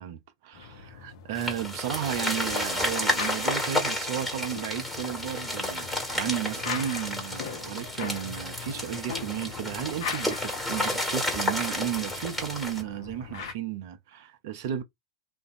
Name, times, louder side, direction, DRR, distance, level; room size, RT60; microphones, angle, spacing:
voice 1, 0.0-14.8, right 11 dB, 50° right, 0.6 m, -34 dB
sound 1, 0.5-13.5, left 7 dB, 55° left, 0.7 m, -41 dB
sound 2, 1.4-12.8, left 1 dB, 5° left, 1.5 m, -31 dB
2.5 x 2.2 x 2.6 m
figure-of-eight pair, 90°, 2 cm